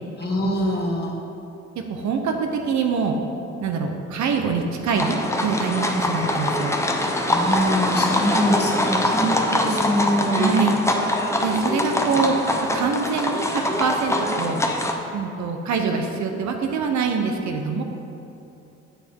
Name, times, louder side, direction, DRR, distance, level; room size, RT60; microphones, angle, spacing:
voice 1, 0.2-1.2 7.3-10.6, equal, 35° left, -3 dB, 1.6 m, -24 dB
voice 2, 1.9-3.1 3.6-6.8 10.3-10.7 11.4-12.3 12.7-14.6 15.1-17.8, right 5 dB, 70° right, 4 dB, 0.9 m, -24 dB
sound 1, 5.0-14.9, left 1 dB, 10° left, 0.7 m, -23 dB
7.1 x 6.8 x 4.5 m, 2.8 s
cardioid pair, 90°, 30 cm